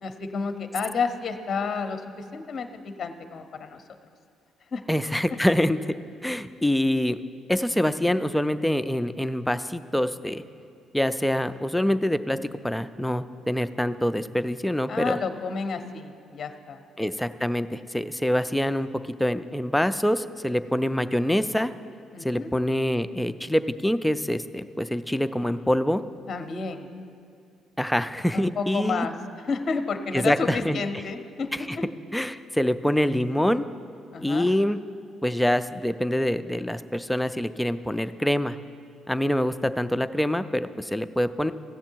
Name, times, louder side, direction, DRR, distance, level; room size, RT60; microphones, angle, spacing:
voice 1, 0.0-3.8 4.7-4.8 14.9-16.8 22.1-22.5 26.3-26.9 28.3-31.5 34.1-34.5, left 4 dB, 40° left, 7 dB, 0.6 m, -30 dB
voice 2, 4.9-5.9 6.2-7.2 7.5-10.4 10.9-12.4 12.6-15.2 17.0-18.9 19.2-21.7 22.2-26.0 27.8-29.1 30.1-30.8 31.5-31.8 32.1-33.7 34.2-34.8 35.2-38.6 39.1-41.5, left 1 dB, 5° left, 11 dB, 0.3 m, -25 dB
15.5 x 7.3 x 4.5 m, 2.3 s
cardioid pair, 130°, 0 cm